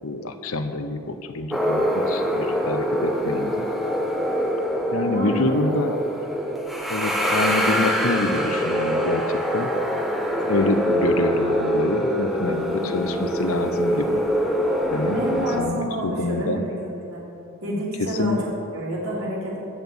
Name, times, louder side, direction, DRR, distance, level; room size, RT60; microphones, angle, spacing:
voice 1, 0.0-3.7 4.9-6.0 6.9-9.7 10.5-14.2 14.9-16.6 18.0-18.4, left 2 dB, 65° left, 8 dB, 0.9 m, -26 dB
sound 1, 1.5-15.6, equal, ahead, 1.1 m, -24 dB
voice 2, 5.0-5.7 12.8-12.9 15.1-17.2 17.6-19.6, equal, 70° right, -5 dB, 3.4 m, -29 dB
14.0 x 6.3 x 8.8 m, 2.7 s
head